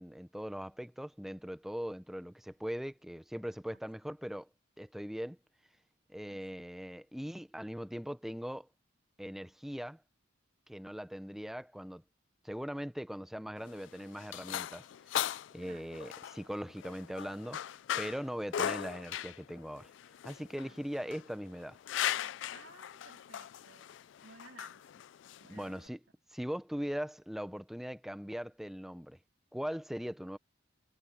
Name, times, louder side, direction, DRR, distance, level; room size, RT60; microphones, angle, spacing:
voice 1, 0.0-4.5 4.8-5.4 6.1-8.7 9.2-10.0 10.7-12.0 12.4-14.9 15.5-19.9 20.2-21.8 25.5-26.0 26.3-29.2 29.5-30.4, equal, ahead, 0.5 m, -40 dB
voice 2, 6.3-6.7 15.6-16.0 20.6-20.8 22.5-23.9 24.2-25.1 25.4-25.8 29.9-30.1, right 4 dB, 85° right, 2.7 m, -57 dB
sound 1, 13.6-25.9, left 11 dB, 70° left, 0.3 m, -39 dB
head